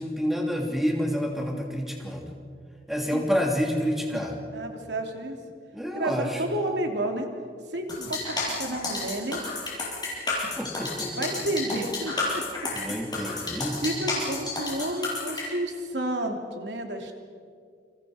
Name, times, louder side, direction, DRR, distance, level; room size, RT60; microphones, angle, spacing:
voice 1, 0.0-2.3 2.9-4.4 5.7-6.4 10.6-11.3 12.7-13.8, equal, ahead, 0 dB, 3.1 m, -28 dB
voice 2, 4.5-5.4 5.9-7.3 7.7-9.4 11.2-12.4 13.2-17.1, right 1 dB, 80° right, 3 dB, 3.0 m, -31 dB
sound 1, 7.9-15.4, left 3 dB, 25° left, 7.2 m, -30 dB
29.5 x 26.5 x 5.1 m, 2.2 s
head